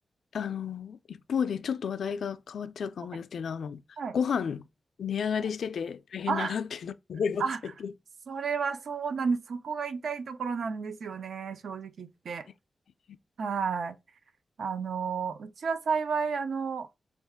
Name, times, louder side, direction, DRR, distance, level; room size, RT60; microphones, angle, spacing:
voice 1, 0.3-3.8 4.1-4.6 5.0-7.4 7.8-7.9, left 7 dB, 80° left, 0.3 m, -32 dB
voice 2, 6.3-6.6 7.4-7.6 8.3-12.5 13.4-14.0 14.6-16.9, right 5 dB, 75° right, 0.4 m, -31 dB
4.4 x 2.3 x 3.5 m
wide cardioid pair, 165°, 0 cm